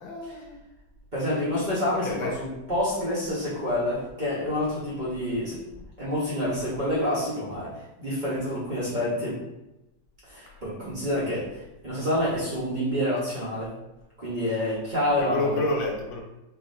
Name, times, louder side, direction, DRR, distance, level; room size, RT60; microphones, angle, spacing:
voice 1, 0.0-0.6 1.9-2.4 10.5-10.6 11.1-11.4 15.2-16.2, left 2 dB, 90° left, 1 dB, 1.6 m, -30 dB
voice 2, 1.1-5.6 6.0-7.7 8.0-9.3 10.3-11.4 11.8-13.7 14.2-15.6, left 1 dB, 35° right, -9 dB, 0.9 m, -27 dB
4.6 x 2.9 x 2.6 m, 0.96 s
omnidirectional pair, 2.1 m